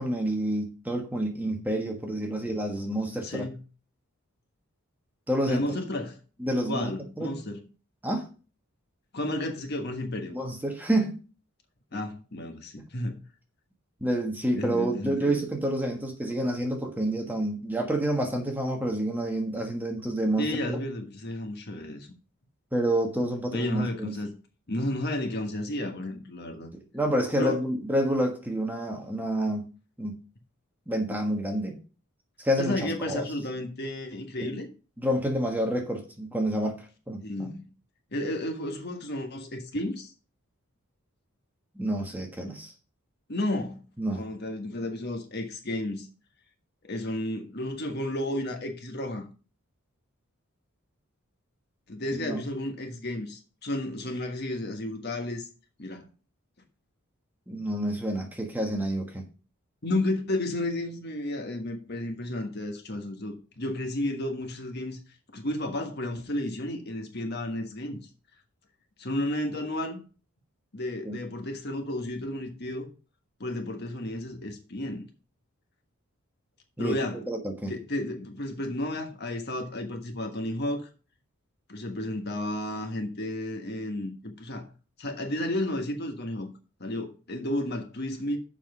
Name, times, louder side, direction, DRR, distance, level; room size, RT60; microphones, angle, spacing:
voice 1, 0.0-3.4 5.3-5.6 6.4-7.4 8.0-8.3 10.3-11.2 14.0-20.8 22.7-24.1 26.7-29.7 30.0-30.2 30.9-31.8 32.4-33.2 34.4-34.6 35.0-37.5 41.7-42.7 44.0-44.3 52.2-52.4 57.5-59.2 71.0-71.2 76.8-77.7, right 1 dB, 10° right, 1.4 m, -29 dB
voice 2, 3.2-3.6 5.5-6.2 6.7-7.6 9.1-10.4 11.9-13.2 14.5-15.4 20.4-22.1 23.5-24.3 24.7-26.7 27.4-27.6 32.6-34.7 37.2-37.7 38.1-40.1 43.3-43.9 44.1-46.1 46.8-49.2 51.9-55.5 55.8-56.0 59.8-65.0 65.3-68.0 69.0-70.0 70.7-72.9 73.4-75.1 76.8-77.2 77.7-80.9 81.7-84.7 85.0-86.5 86.8-88.4, left 1 dB, 50° left, 1.4 m, -32 dB
7.0 x 5.9 x 5.5 m
head